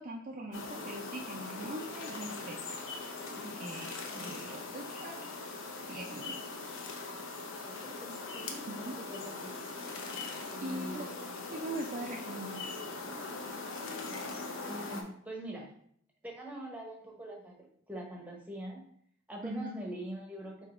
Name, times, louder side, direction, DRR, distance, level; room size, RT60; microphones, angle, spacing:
voice 1, 0.0-2.7 3.0-5.2 5.9-6.4 8.7-8.9 10.3-11.1 11.5-12.7 19.4-19.7, right 1 dB, 35° right, 0 dB, 0.4 m, -42 dB
sound 1, 0.5-15.0, left 3 dB, 65° left, 0.7 m, -41 dB
voice 2, 7.7-9.6 10.5-11.3 14.7-15.7 16.2-18.8 19.3-20.7, right 1 dB, 5° right, -1 dB, 0.8 m, -44 dB
4.7 x 4.4 x 2.4 m, 0.64 s
head